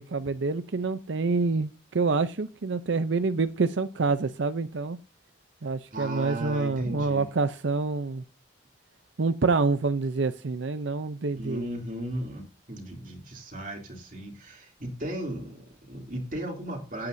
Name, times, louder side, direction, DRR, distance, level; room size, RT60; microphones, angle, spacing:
voice 1, 0.0-5.0 5.6-8.2 9.2-11.7, right 4 dB, 85° right, 0.6 m, -27 dB
voice 2, 5.9-7.2 11.4-12.4 12.7-17.1, right 1 dB, 45° right, 3.0 m, -35 dB
17.0 x 8.7 x 2.7 m
head